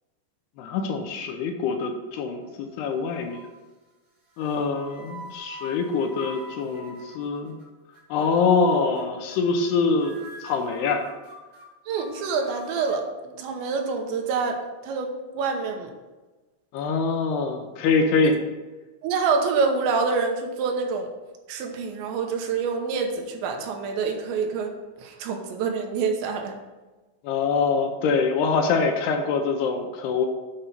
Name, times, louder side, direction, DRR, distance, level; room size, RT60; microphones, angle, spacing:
voice 1, 0.6-3.4 4.4-7.6 8.1-11.0 16.7-18.4 27.2-30.3, left 4 dB, 80° left, 4 dB, 2.6 m, -24 dB
sound 1, 2.1-2.7 3.1-3.6 4.3-7.6 7.9-8.3 8.7-9.0 9.3-9.7 10.0-13.0, right 1 dB, 55° right, 1.2 m, -45 dB
voice 2, 11.9-15.9 18.2-18.3 19.0-21.1 21.5-24.7 25.0-26.5, right 5 dB, 85° right, 3 dB, 3.3 m, -26 dB
8.7 x 5.3 x 5.8 m, 1.2 s
omnidirectional pair, 5.1 m